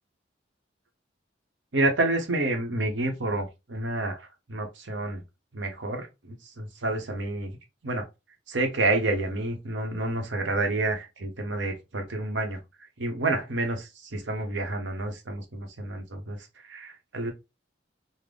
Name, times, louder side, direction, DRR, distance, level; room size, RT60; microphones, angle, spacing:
voice 1, 1.7-5.2 5.5-7.5 7.8-8.1 8.5-12.6 13.0-16.4 16.6-17.3, right 2 dB, 85° right, 0.9 m, -29 dB
3.7 x 2.0 x 3.3 m
head